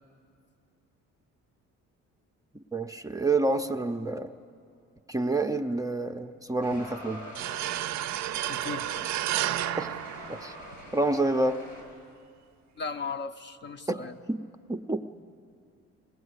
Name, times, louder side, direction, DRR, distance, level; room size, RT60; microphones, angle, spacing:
voice 1, 2.7-4.3 5.1-7.2 9.8-9.9 10.3-10.6 10.9-11.6 13.9-14.4 14.7-15.0, right 2 dB, 10° right, 5 dB, 0.6 m, -28 dB
sound 1, 6.6-11.8, equal, 85° left, 7.7 m, -45 dB
sound 2, 7.3-10.9, right 13 dB, 65° right, 0.5 m, -32 dB
voice 2, 8.5-9.1 12.8-14.2, left 5 dB, 35° left, 7 dB, 0.9 m, -37 dB
21.0 x 18.5 x 8.1 m, 2.4 s
cardioid pair, 90°, 30 cm